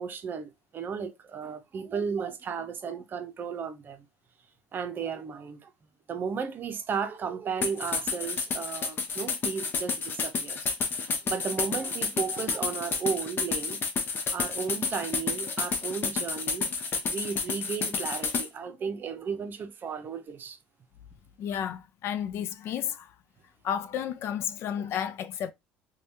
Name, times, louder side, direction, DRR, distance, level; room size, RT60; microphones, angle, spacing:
voice 1, 0.0-4.0 4.7-5.7 6.1-13.8 14.3-16.7 17.1-20.6, right 6 dB, 40° right, 0.6 m, -34 dB
sound 1, 7.6-18.5, left 4 dB, 45° left, 0.8 m, -30 dB
voice 2, 21.4-23.1 23.6-25.5, left 9 dB, 60° left, 0.4 m, -32 dB
3.2 x 2.3 x 2.6 m
supercardioid pair, 75°, 5 cm